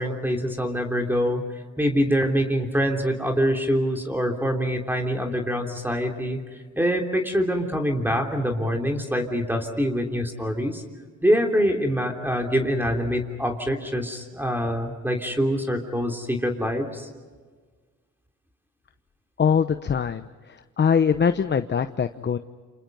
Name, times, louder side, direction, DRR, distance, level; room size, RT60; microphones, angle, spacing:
voice 1, 0.0-1.4 1.8-6.4 6.8-10.8 11.2-17.1, equal, 5° right, 2 dB, 3.3 m, -25 dB
voice 2, 19.4-20.3 20.8-22.4, left 7 dB, 35° left, 10 dB, 0.9 m, -22 dB
29.0 x 27.5 x 5.5 m, 1.5 s
cardioid pair, 90°, 30 cm